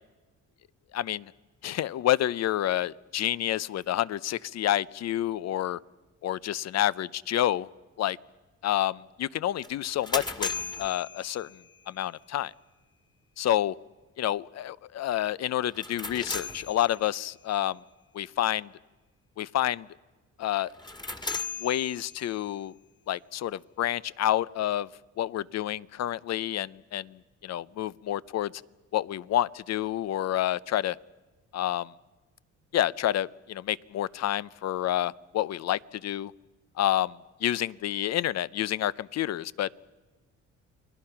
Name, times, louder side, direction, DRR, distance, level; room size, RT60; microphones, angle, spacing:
voice 1, 0.9-1.3 1.6-5.8 6.2-7.7 8.0-8.2 8.6-10.5 10.8-11.5 11.9-12.5 13.4-13.7 14.2-17.8 18.1-18.7 19.4-19.9 20.4-20.7 21.6-22.7 23.1-24.9 25.2-27.2 27.4-28.5 28.9-31.0 31.5-31.9 32.7-36.3 36.8-37.1 37.4-39.8, left 12 dB, 60° left, 20 dB, 0.6 m, -28 dB
sound 1, 9.6-11.9 15.6-17.3 20.7-22.5, left 3 dB, 15° left, 1.8 m, -37 dB
29.5 x 21.0 x 5.8 m, 1.3 s
cardioid pair, 90°, 30 cm